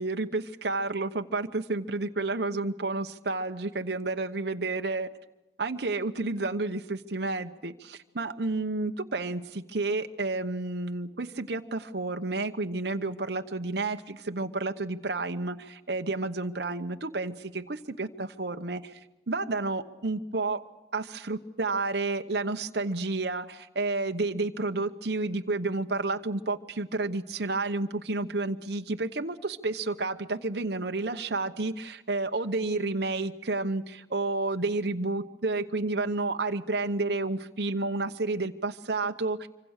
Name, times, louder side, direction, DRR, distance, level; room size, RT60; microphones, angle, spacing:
voice 1, 0.0-5.1 5.6-19.0 19.3-20.6 20.9-39.5, right 3 dB, 65° right, 6 dB, 1.0 m, -30 dB
26.0 x 25.0 x 6.5 m, 1.0 s
head